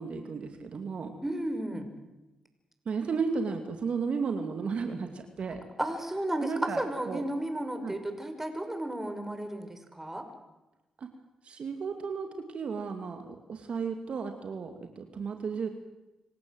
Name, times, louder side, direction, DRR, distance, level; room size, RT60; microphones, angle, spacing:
voice 1, 0.0-1.1 2.9-5.6 6.4-7.2 7.8-7.9 11.0-11.1 11.4-15.7, right 5 dB, 60° right, 6 dB, 2.3 m, -34 dB
voice 2, 1.2-1.9 5.8-10.3, right 1 dB, 15° right, 7 dB, 5.8 m, -33 dB
27.0 x 16.5 x 7.9 m, 1.0 s
supercardioid pair, 45°, 2 cm